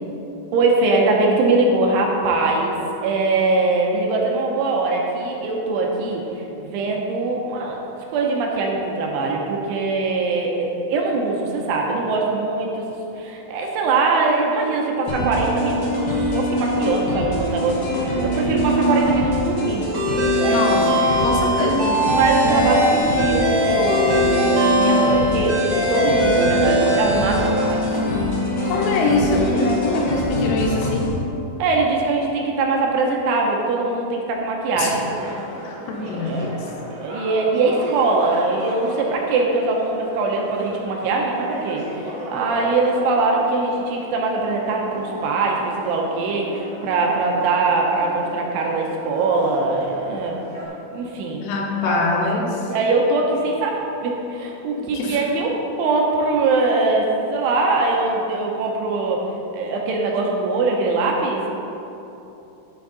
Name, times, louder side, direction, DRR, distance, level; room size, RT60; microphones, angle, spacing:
voice 1, 0.5-2.8 3.0-6.2 6.6-7.8 8.1-12.9 13.2-19.9 20.4-20.6 20.9-21.2 21.7-27.9 31.6-35.1 36.2-41.8 42.3-50.4 50.9-51.5 51.9-52.0 52.7-55.5 55.8-59.2 59.5-61.5, right 3 dB, 80° right, -1 dB, 3.3 m, -22 dB
sound 1, 15.1-31.1, equal, 50° left, 1.9 m, -23 dB
sound 2, 19.9-28.1, left 1 dB, 45° right, 3.2 m, -21 dB
voice 2, 20.5-21.9 22.4-22.6 28.7-31.1 34.8-35.3 35.6-36.5 51.4-52.7 54.8-55.2, left 3 dB, 80° left, 0 dB, 3.5 m, -24 dB
sound 3, 34.9-50.7, equal, 60° right, 1.4 m, -36 dB
12.0 x 7.2 x 4.1 m, 3.0 s
omnidirectional pair, 5.7 m